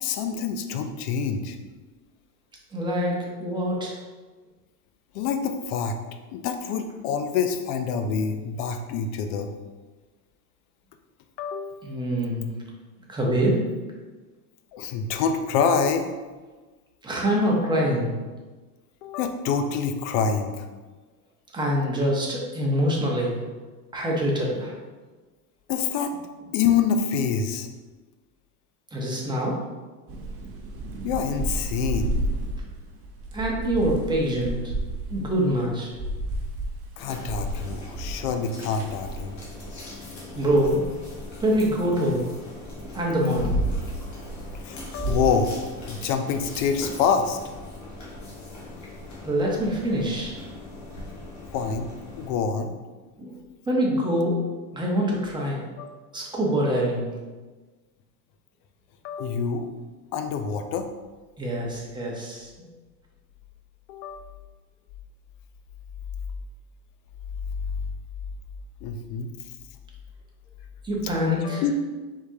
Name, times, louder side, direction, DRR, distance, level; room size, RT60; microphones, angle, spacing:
voice 1, 0.0-1.6 5.1-6.0 6.3-9.5 11.4-11.8 14.7-16.1 19.0-20.7 25.7-26.1 26.5-27.7 31.0-32.2 37.0-39.4 44.6-45.6 45.9-47.4 51.5-51.9 52.2-52.7 55.8-55.9 59.0-59.7 60.1-60.9 63.9-64.2 68.8-69.3 71.4-71.9, left 6 dB, 55° left, 7 dB, 0.6 m, -26 dB
voice 2, 2.7-4.0 11.8-12.5 13.1-13.6 17.0-18.1 21.5-23.4 23.9-24.7 28.9-29.6 33.3-34.7 35.1-35.9 40.3-40.9 41.4-42.3 42.9-43.5 49.2-50.4 53.2-53.4 53.7-54.4 54.7-55.6 56.1-57.1 61.4-62.7 70.8-71.6, equal, 10° right, -3 dB, 1.0 m, -25 dB
Thunder / Rain, 30.1-39.8 40.2-42.2 42.8-47.6, right 1 dB, 30° right, 0.7 m, -32 dB
sound 1, 37.0-52.3, left 2 dB, 35° left, 1.5 m, -41 dB
4.6 x 3.7 x 2.8 m, 1.3 s
supercardioid pair, 110°, 46 cm